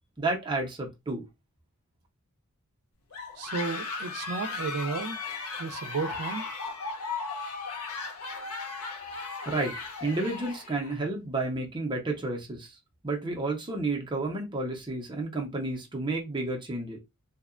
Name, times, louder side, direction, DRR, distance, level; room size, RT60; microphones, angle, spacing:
voice 1, 0.2-1.2 9.5-12.8 13.0-17.0, right 2 dB, 20° right, 0.5 m, -31 dB
sound 1, 3.1-11.0, left 4 dB, 85° left, 0.6 m, -36 dB
voice 2, 3.4-5.2 5.6-6.4, right 4 dB, 90° right, 0.4 m, -33 dB
2.7 x 2.1 x 2.4 m
head